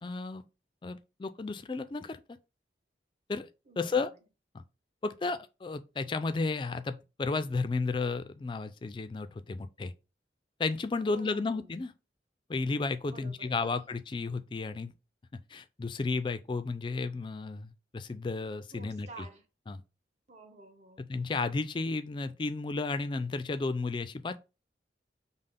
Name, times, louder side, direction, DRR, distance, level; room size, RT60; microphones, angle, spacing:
voice 1, 0.0-0.4 0.8-2.4 3.3-3.5 3.8-4.1 5.0-9.9 10.6-11.9 12.5-14.9 15.5-19.1 19.7-19.8 21.1-24.4, left 3 dB, 25° left, 0.3 m, -33 dB
voice 2, 3.7-4.2 11.1-11.7 13.0-13.7 18.7-19.4 20.3-21.1, right 2 dB, 40° right, 0.8 m, -50 dB
5.4 x 2.1 x 3.7 m
head